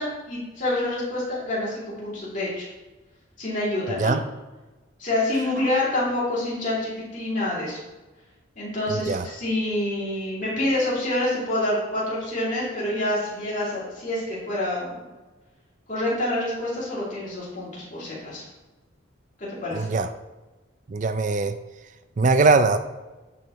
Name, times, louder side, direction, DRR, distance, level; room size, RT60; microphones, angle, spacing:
voice 1, 0.0-2.7 3.4-4.1 5.0-7.8 8.6-15.1 15.9-18.4 19.4-19.9, left 1 dB, 40° left, -7 dB, 2.6 m, -27 dB
voice 2, 3.9-4.2 8.9-9.2 19.7-20.1 20.9-21.6 22.2-22.8, right 3 dB, 40° right, 10 dB, 0.4 m, -21 dB
10.5 x 5.0 x 3.0 m, 1.2 s
head